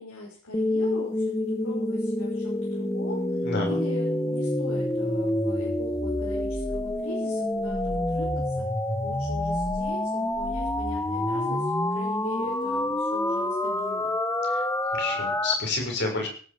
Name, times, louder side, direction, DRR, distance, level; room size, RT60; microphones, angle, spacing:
voice 1, 0.0-8.6 9.0-14.1, left 2 dB, 70° left, -4 dB, 6.6 m, -40 dB
sound 1, 0.5-15.5, left 1 dB, 10° left, 1.2 m, -27 dB
voice 2, 3.4-3.8 14.4-16.3, left 3 dB, 50° left, 1 dB, 6.4 m, -30 dB
18.0 x 13.5 x 5.1 m, 0.43 s
head